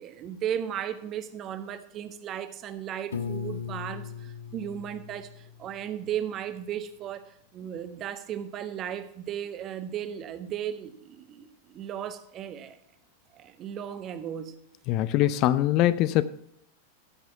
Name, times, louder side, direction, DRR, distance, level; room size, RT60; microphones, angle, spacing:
voice 1, 0.0-12.8 13.3-14.6, right 9 dB, 30° right, 0.9 m, -36 dB
Piano, 3.1-6.0, left 6 dB, 65° left, 0.8 m, -38 dB
voice 2, 14.9-16.2, left 14 dB, 40° left, 0.4 m, -22 dB
13.5 x 6.1 x 5.6 m
figure-of-eight pair, 90°, 0 cm